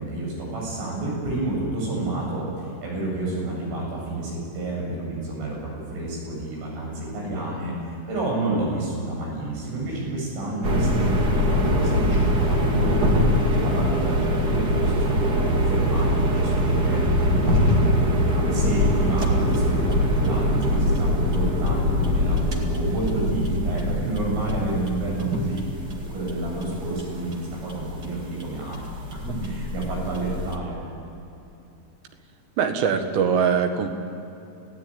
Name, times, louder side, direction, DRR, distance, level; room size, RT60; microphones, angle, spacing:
voice 1, 0.0-16.1 16.4-25.6 26.1-28.8 29.1-30.8, right 2 dB, 85° right, -3 dB, 11.0 m, -30 dB
sound 1, 10.6-30.6, equal, 40° right, 1.4 m, -23 dB
voice 2, 32.6-33.9, right 6 dB, 70° right, 5 dB, 3.6 m, -22 dB
28.5 x 17.5 x 9.0 m, 2.7 s
omnidirectional pair, 5.7 m